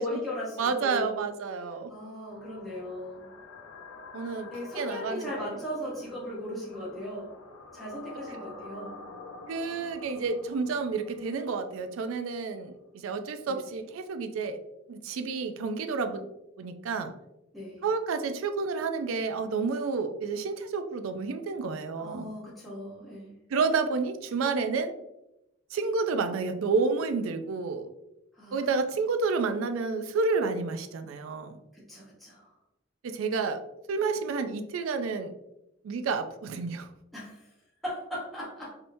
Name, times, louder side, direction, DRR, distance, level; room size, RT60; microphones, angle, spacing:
voice 1, 0.0-1.2 1.9-3.3 4.5-7.3 7.7-8.9 13.5-13.6 17.5-17.9 22.0-23.3 28.4-28.7 31.7-32.5 37.1-37.4 37.8-38.8, left 1 dB, ahead, -7 dB, 0.8 m, -38 dB
voice 2, 0.6-1.9 4.1-4.5 4.7-5.3 9.5-14.6 14.9-16.3 16.6-17.1 17.8-22.3 23.5-24.9 25.7-27.9 28.5-31.6 33.0-33.6 33.9-35.3 35.8-36.9, right 4 dB, 80° right, 9 dB, 0.4 m, -30 dB
sound 1, 2.3-12.4, left 3 dB, 85° left, 0.5 m, -48 dB
3.4 x 2.7 x 2.6 m, 0.87 s
head